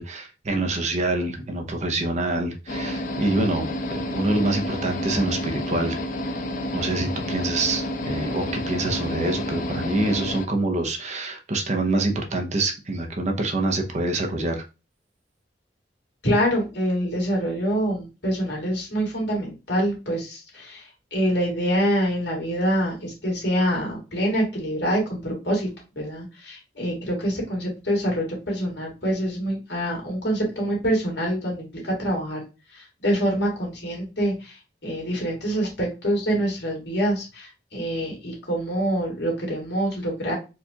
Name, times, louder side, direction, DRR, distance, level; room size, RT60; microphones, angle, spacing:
voice 1, 0.0-6.0 6.7-14.6, right 2 dB, 40° right, 3 dB, 0.6 m, -26 dB
sound 1, 2.7-10.5, left 1 dB, 50° left, 0.5 m, -29 dB
voice 2, 16.2-20.8 21.1-25.7 26.0-32.4 32.7-34.6 34.8-40.3, equal, 70° left, -2 dB, 1.9 m, -25 dB
4.4 x 2.4 x 2.8 m, 0.29 s
head